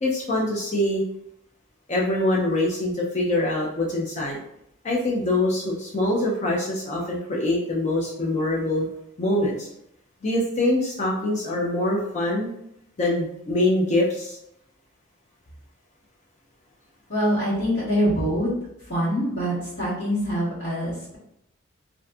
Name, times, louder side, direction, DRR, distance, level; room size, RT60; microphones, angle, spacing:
voice 1, 0.0-1.0 1.9-4.4 4.8-8.9 9.2-9.7 10.2-12.5 13.0-14.4, left 1 dB, 35° left, -2 dB, 0.4 m, -24 dB
voice 2, 17.1-18.5 18.8-21.2, equal, 55° left, -8 dB, 1.3 m, -24 dB
2.5 x 2.4 x 2.3 m, 0.77 s
head